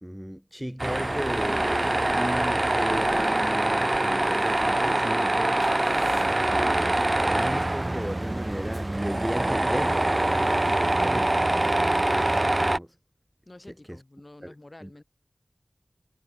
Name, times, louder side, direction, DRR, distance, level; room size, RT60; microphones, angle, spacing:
voice 1, 0.0-13.0 13.9-14.0 14.4-14.5 14.8-14.9, equal, 5° right, 1.0 m, -35 dB
Tools, 0.8-12.8, right 1 dB, 30° right, 0.4 m, -24 dB
voice 2, 13.5-15.0, left 1 dB, 35° left, 4.3 m, -48 dB
wide cardioid pair, 55°, 0 cm